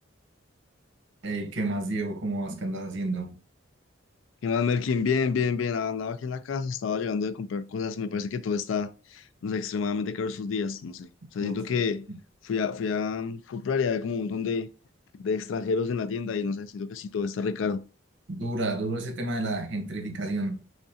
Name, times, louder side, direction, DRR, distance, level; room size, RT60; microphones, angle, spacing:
voice 1, 1.2-3.3 11.4-11.5 12.1-12.2 18.3-20.6, right 2 dB, 70° right, 0.8 m, -30 dB
voice 2, 4.4-12.1 12.4-14.7 15.2-17.8, left 5 dB, 75° left, 0.4 m, -29 dB
3.6 x 3.2 x 2.6 m
head